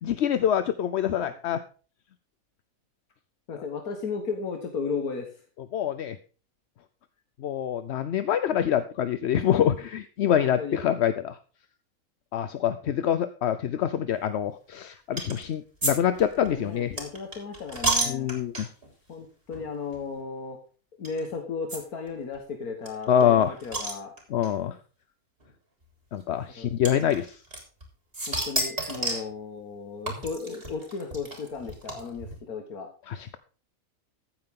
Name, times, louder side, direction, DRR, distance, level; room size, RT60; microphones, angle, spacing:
voice 1, 0.0-1.6 5.7-6.2 7.4-11.4 12.3-16.9 18.1-18.7 23.1-23.5 24.3-24.8 26.1-27.4 33.1-33.4, left 9 dB, 60° left, 12 dB, 0.8 m, -25 dB
voice 2, 3.5-5.3 10.4-10.8 16.4-18.3 19.1-20.6 21.0-24.1 26.5-26.7 28.3-32.9, left 5 dB, 80° left, 4 dB, 1.9 m, -35 dB
sound 1, 15.2-15.4 15.8-15.9 16.2-18.9 19.5-19.7 19.9-20.0 21.0-21.2 21.7-21.8 22.1-22.2 22.3-22.4 22.9-24.5 25.4-25.5 26.8-27.8 28.1-29.3 30.1-32.3, right 2 dB, 40° right, 3.7 m, -31 dB
14.5 x 9.1 x 3.7 m, 0.38 s
omnidirectional pair, 1.5 m